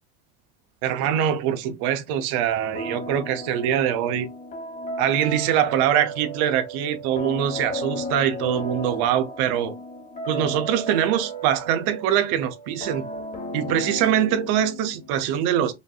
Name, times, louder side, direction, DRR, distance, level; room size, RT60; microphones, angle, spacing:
voice 1, 0.8-4.3 5.0-9.8 10.3-13.0 13.5-15.7, right 10 dB, 55° right, 0.7 m, -23 dB
sound 1, 2.7-15.1, equal, 15° left, 1.1 m, -35 dB
5.2 x 2.6 x 2.3 m
cardioid pair, 165°, 46 cm